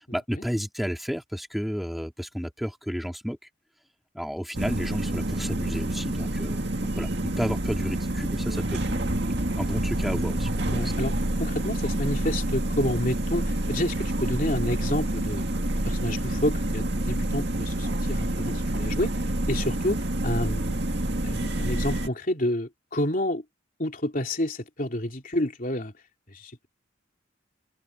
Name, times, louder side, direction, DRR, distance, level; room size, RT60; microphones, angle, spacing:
voice 1, 0.0-3.4 4.1-10.9, equal, ahead, 2.6 m, -32 dB
sound 1, 4.5-22.1, right 1 dB, 55° right, 2.3 m, -28 dB
voice 2, 10.7-15.4 15.8-20.8 21.2-23.4 23.8-25.9 26.3-26.7, left 1 dB, 45° left, 3.5 m, -29 dB
head